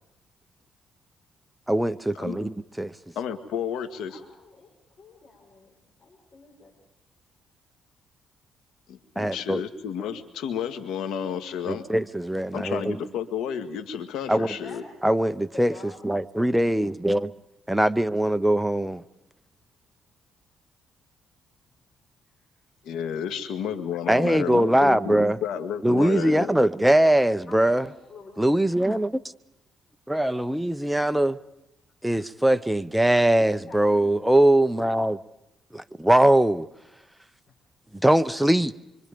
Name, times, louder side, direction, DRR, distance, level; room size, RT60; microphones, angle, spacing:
voice 1, 1.7-2.9 9.2-9.6 11.7-13.0 14.3-14.6 15.0-15.7 16.0-17.3 17.7-19.0 24.1-25.4 25.8-27.9 28.4-29.1 30.1-31.4 32.0-35.2 35.7-36.7 37.9-38.7, right 1 dB, 5° right, 0.8 m, -21 dB
voice 2, 3.2-4.2 8.9-11.9 12.5-14.8 22.8-26.5, left 8 dB, 85° left, 1.8 m, -31 dB
voice 3, 4.1-6.8 14.5-15.1 15.5-16.2 22.2-22.5 27.5-28.9 33.5-34.3, left 3 dB, 45° left, 5.5 m, -48 dB
25.5 x 25.0 x 5.2 m
cardioid pair, 90°, 0 cm